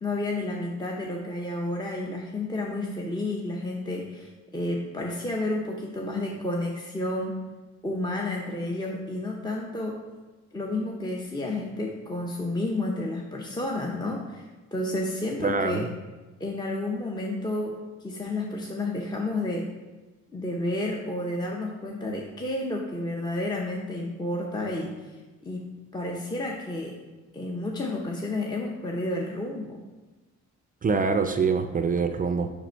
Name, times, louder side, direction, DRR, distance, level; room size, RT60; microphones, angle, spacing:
voice 1, 0.0-7.4 7.8-10.0 10.5-15.9 16.4-19.7 20.3-27.0 27.3-29.8, left 2 dB, 15° left, -1 dB, 0.7 m, -31 dB
voice 2, 15.4-15.9 30.8-32.5, right 4 dB, 30° right, 7 dB, 0.4 m, -25 dB
5.2 x 5.0 x 4.5 m, 1.2 s
cardioid pair, 90°, 30 cm